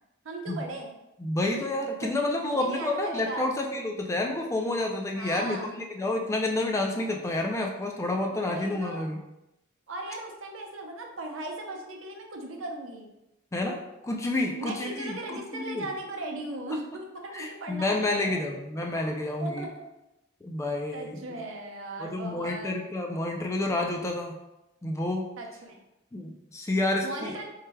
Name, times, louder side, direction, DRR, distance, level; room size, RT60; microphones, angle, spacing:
voice 1, 0.2-1.0 2.0-2.1 2.4-3.5 5.1-5.8 6.9-7.0 8.3-9.0 9.9-13.1 14.5-18.6 19.4-19.9 20.9-22.7 25.4-25.8 27.0-27.4, right 2 dB, 80° right, 2 dB, 0.6 m, -38 dB
voice 2, 1.2-9.2 13.5-15.9 17.3-19.7 20.4-21.4 22.0-24.4 24.8-25.2 26.1-27.4, left 2 dB, 15° left, 1 dB, 0.3 m, -29 dB
4.6 x 3.2 x 2.2 m, 0.93 s
head